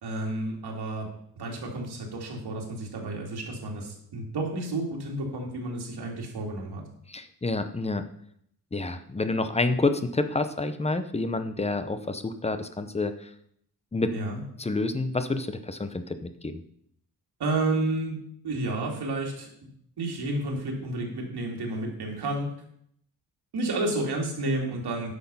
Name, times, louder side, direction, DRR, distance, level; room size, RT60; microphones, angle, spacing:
voice 1, 0.0-1.1 1.4-6.8 14.1-14.4 17.4-18.2 18.4-19.5 20.0-22.5 23.5-25.1, right 2 dB, 80° right, 0 dB, 2.7 m, -31 dB
voice 2, 7.1-8.1 8.7-13.3 13.9-14.1 14.6-16.6, left 3 dB, 15° left, 10 dB, 0.6 m, -28 dB
10.0 x 6.4 x 5.4 m, 0.69 s
wide cardioid pair, 160°, 39 cm